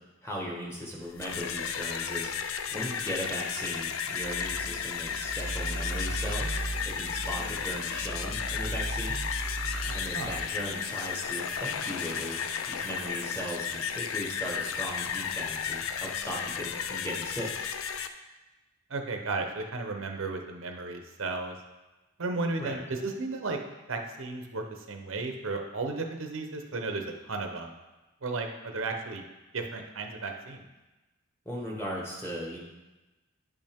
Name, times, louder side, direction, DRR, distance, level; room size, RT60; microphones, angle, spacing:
voice 1, 0.2-2.3 2.7-9.2 9.9-12.4 12.7-17.5 22.6-22.8 31.4-32.6, equal, 10° left, -3 dB, 1.3 m, -37 dB
sound 1, 1.0-18.1, left 7 dB, 80° left, 0.5 m, -34 dB
sound 2, 4.2-10.5, right 2 dB, 10° right, 0.7 m, -37 dB
voice 2, 9.8-10.4 18.9-21.5 22.2-23.6 23.9-27.7 28.2-29.2 29.5-30.7, right 3 dB, 70° right, 4 dB, 0.8 m, -34 dB
9.6 x 5.3 x 3.5 m, 1.1 s
head